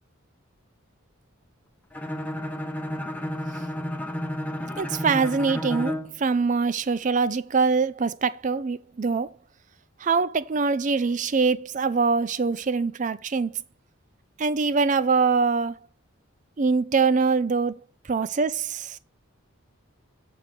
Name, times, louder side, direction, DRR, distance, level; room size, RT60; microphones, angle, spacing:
Bowed string instrument, 1.9-6.2, equal, 5° left, 0.7 m, -31 dB
voice 1, 4.8-9.3 10.0-13.6 14.4-15.8 16.6-17.7 18.1-19.0, right 4 dB, 35° right, 0.4 m, -23 dB
7.6 x 4.7 x 5.2 m
head